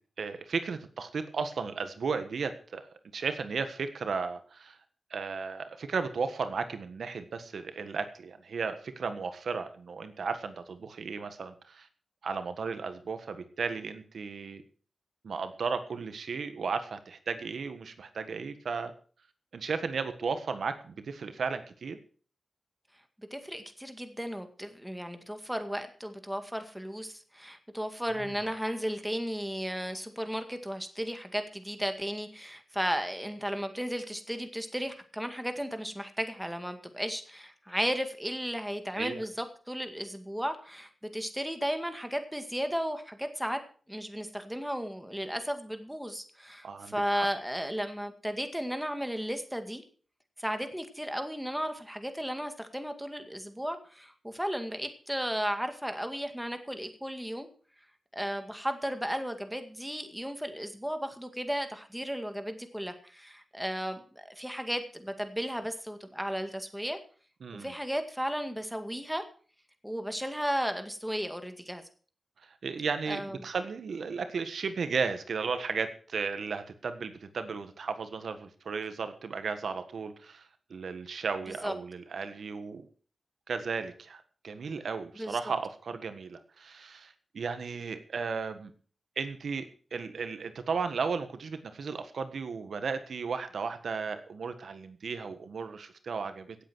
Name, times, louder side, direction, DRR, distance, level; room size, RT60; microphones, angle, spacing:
voice 1, 0.2-4.8 5.1-11.9 12.2-14.6 15.2-18.9 19.5-22.0 28.2-28.3 39.0-39.2 46.6-47.3 67.4-67.7 72.4-82.9 83.5-88.7 89.2-96.6, right 5 dB, 80° right, 9 dB, 1.5 m, -35 dB
voice 2, 23.3-43.6 43.9-49.8 50.4-57.5 58.1-67.0 67.5-69.2 69.8-71.8 73.1-73.4 81.5-81.7 85.2-85.4, equal, 5° right, 7 dB, 2.0 m, -34 dB
17.0 x 8.2 x 6.3 m, 0.42 s
wide cardioid pair, 100°, 0 cm